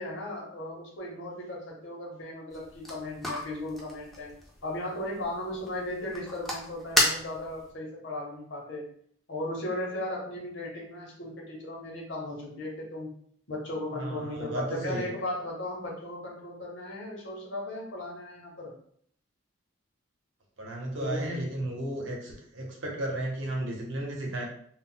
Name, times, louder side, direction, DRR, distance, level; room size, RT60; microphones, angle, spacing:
voice 1, 0.0-4.3 4.6-8.9 9.3-13.1 13.5-18.7 21.0-21.4, left 1 dB, 65° left, -2 dB, 0.9 m, -36 dB
sound 1, 2.5-7.7, left 1 dB, ahead, 0.4 m, -33 dB
voice 2, 13.9-15.1 20.6-24.5, right 1 dB, 70° right, 0 dB, 0.8 m, -34 dB
2.3 x 2.0 x 3.8 m, 0.63 s
head